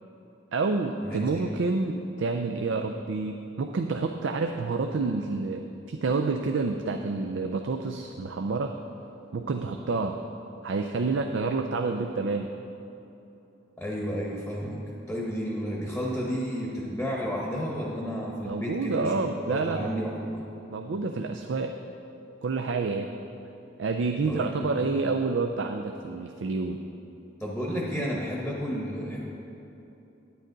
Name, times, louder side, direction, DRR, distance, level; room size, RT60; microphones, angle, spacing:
voice 1, 0.5-8.7 9.3-10.2 10.6-12.5 18.5-19.9 20.7-21.7 22.4-23.1 23.8-26.8, right 3 dB, 70° right, 4 dB, 0.4 m, -28 dB
voice 2, 1.0-1.4 13.8-14.8 15.1-19.1 19.5-20.5 24.2-24.8 27.4-29.2, equal, 5° left, -4 dB, 0.9 m, -32 dB
9.8 x 9.0 x 3.9 m, 2.9 s
head